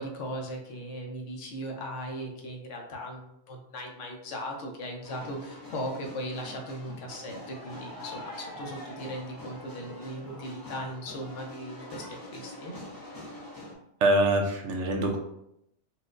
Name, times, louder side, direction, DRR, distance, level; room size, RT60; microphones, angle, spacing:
voice 1, 0.0-12.7, equal, 80° left, 2 dB, 1.0 m, -38 dB
sound 1, 5.0-13.7, left 1 dB, 25° left, 0.4 m, -44 dB
voice 2, 14.0-15.2, right 1 dB, 80° right, 2 dB, 1.0 m, -24 dB
4.3 x 2.0 x 2.5 m, 0.78 s
omnidirectional pair, 1.2 m